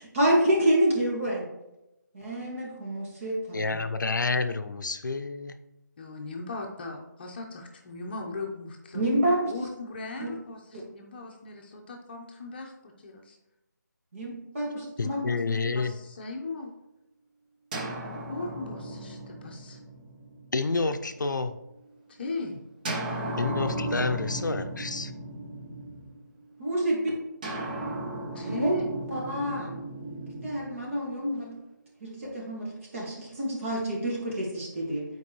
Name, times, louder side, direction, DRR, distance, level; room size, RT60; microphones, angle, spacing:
voice 1, 0.1-1.4 2.1-3.8 8.9-9.7 10.2-10.3 14.1-15.2 26.6-27.0 28.3-28.8 29.1-29.7 30.4-31.5 32.0-32.7 32.9-35.0, right 1 dB, 45° right, -3 dB, 2.2 m, -28 dB
voice 2, 3.5-5.5 15.0-15.9 20.5-21.5 23.4-25.1, left 3 dB, 70° left, 9 dB, 0.6 m, -29 dB
voice 3, 6.0-9.0 9.5-13.4 14.6-16.7 18.3-19.8 22.1-22.6 28.3-29.0, left 3 dB, 30° left, 1 dB, 0.8 m, -38 dB
sound 1, 17.7-21.5 22.8-26.4 27.4-31.6, right 1 dB, 25° right, 0.8 m, -35 dB
8.2 x 4.6 x 3.1 m, 0.93 s
figure-of-eight pair, 160°, 10 cm